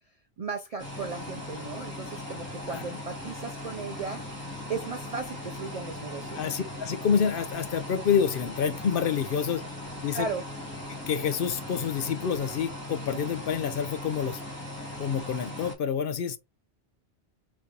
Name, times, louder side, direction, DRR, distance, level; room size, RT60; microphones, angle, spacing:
voice 1, 0.4-4.2 4.7-6.6 10.1-10.5, right 4 dB, 60° right, 0.4 m, -36 dB
sound 1, 0.8-15.7, left 1 dB, 10° left, 2.7 m, -39 dB
voice 2, 6.3-9.6 10.0-10.3 10.9-14.4 15.0-16.4, left 7 dB, 60° left, 0.7 m, -28 dB
5.1 x 3.2 x 2.8 m
omnidirectional pair, 1.1 m